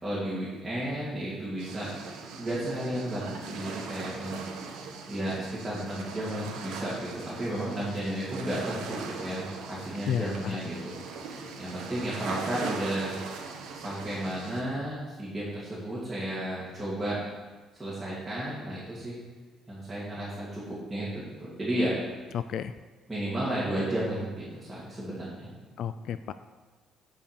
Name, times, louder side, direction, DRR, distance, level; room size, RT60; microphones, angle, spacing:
voice 1, 0.0-1.9 2.4-4.4 5.1-10.9 11.6-13.1 13.7-17.2 17.8-19.2 19.7-21.9 23.1-25.5, right 1 dB, 10° right, -9 dB, 2.5 m, -33 dB
sound 1, 1.6-14.6, right 4 dB, 85° right, 1.3 m, -40 dB
voice 2, 10.1-10.6 22.3-22.7 25.8-26.3, left 9 dB, 55° left, 12 dB, 0.3 m, -32 dB
9.4 x 5.4 x 6.8 m, 1.3 s
cardioid pair, 155°, 0 cm